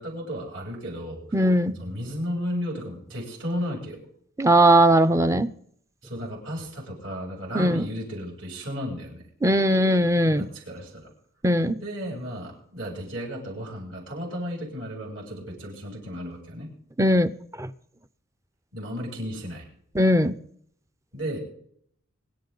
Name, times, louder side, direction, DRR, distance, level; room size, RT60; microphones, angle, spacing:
voice 1, 0.0-1.4 1.8-4.0 6.0-9.2 10.4-11.1 11.8-16.7 18.7-19.7 21.1-21.4, equal, 70° right, -2 dB, 7.7 m, -34 dB
voice 2, 1.3-1.8 4.4-5.5 7.5-7.8 9.4-10.5 11.4-11.8 17.0-17.3 17.6-17.7 19.9-20.3, right 1 dB, 15° right, 12 dB, 0.5 m, -19 dB
26.0 x 12.0 x 4.0 m, 0.65 s
head